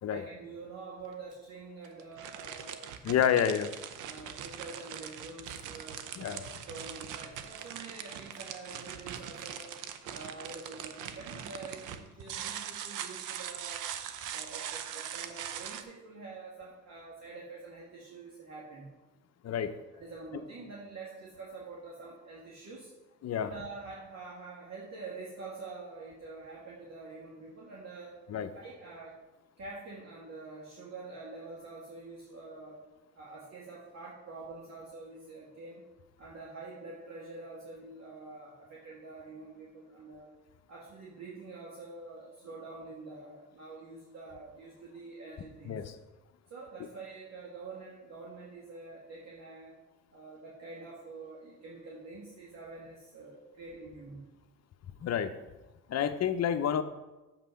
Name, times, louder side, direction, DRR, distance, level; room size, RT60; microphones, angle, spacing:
voice 1, 0.1-2.9 4.0-9.7 10.1-13.8 14.3-18.9 19.6-22.9 23.4-28.2 28.5-29.2 29.6-32.8 33.1-35.8 36.2-40.3 40.7-45.9 46.5-49.8 50.1-54.3, right 3 dB, 60° right, -5 dB, 1.9 m, -46 dB
sound 1, 1.0-1.1 1.8-15.8, right 9 dB, 85° right, 0.7 m, -41 dB
voice 2, 3.0-3.7 6.2-6.4 19.4-19.7 23.2-23.5 28.3-28.5 45.7-45.8 55.0-55.3 55.9-56.8, left 8 dB, 55° left, 9 dB, 0.8 m, -28 dB
7.4 x 5.9 x 5.7 m, 1.1 s
cardioid pair, 90°, 30 cm